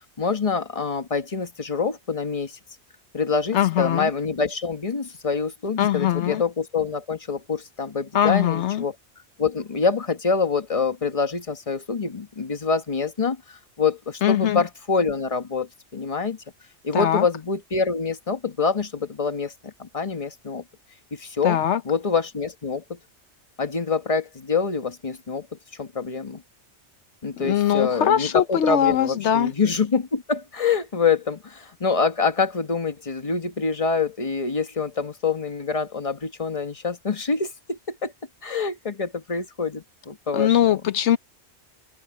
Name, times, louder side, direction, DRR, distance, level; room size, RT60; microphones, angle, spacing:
voice 1, 0.2-2.6 3.1-8.9 9.4-16.4 16.8-20.6 21.1-23.0 23.6-25.5 25.8-26.4 27.2-38.1 38.4-40.8, left 5 dB, 30° left, 1.4 m, -26 dB
voice 2, 3.5-4.1 5.8-6.4 8.1-8.8 14.2-14.6 16.9-17.3 21.4-21.8 27.4-29.5 40.3-41.2, left 10 dB, 80° left, 1.0 m, -21 dB
open air
omnidirectional pair, 1.2 m